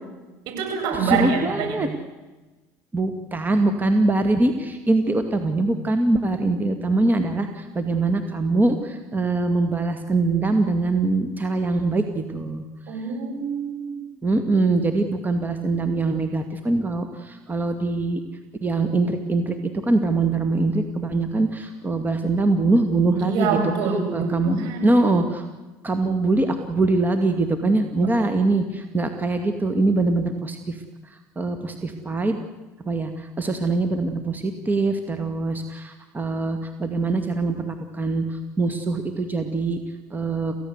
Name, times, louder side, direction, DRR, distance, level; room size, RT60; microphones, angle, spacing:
voice 1, 0.5-1.8 12.9-14.0 23.2-25.0 28.0-28.1, right 5 dB, 65° right, 3 dB, 7.6 m, -26 dB
voice 2, 1.0-1.9 2.9-12.6 14.2-18.2 18.6-19.6 19.8-23.6 24.1-24.6 24.8-25.5 25.8-30.8 31.4-32.4 32.9-39.8 40.1-40.6, right 2 dB, 20° right, 7 dB, 2.3 m, -23 dB
28.0 x 16.0 x 8.2 m, 1.2 s
hypercardioid pair, 75°, 8 cm